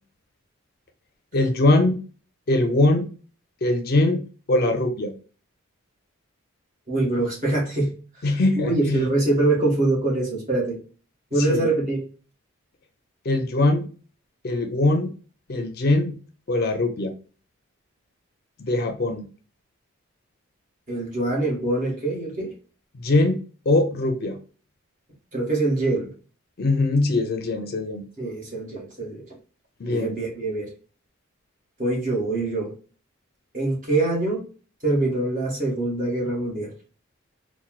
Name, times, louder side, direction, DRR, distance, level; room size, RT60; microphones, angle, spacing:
voice 1, 1.3-2.0 2.5-3.1 3.6-4.2 4.5-5.1 8.2-9.0 11.5-11.6 13.3-13.9 14.4-15.1 15.5-16.1 16.5-17.1 18.6-19.3 23.0-23.4 23.7-24.4 26.6-28.0 29.8-30.1, left 2 dB, 45° left, 6 dB, 0.4 m, -21 dB
voice 2, 6.9-7.9 8.2-10.8 11.3-12.0 20.9-22.5 25.3-26.1 28.2-29.2 29.9-30.7 31.8-32.7 33.5-34.5 34.8-36.7, right 2 dB, 35° right, -3 dB, 1.4 m, -24 dB
4.3 x 2.1 x 2.3 m, 0.37 s
head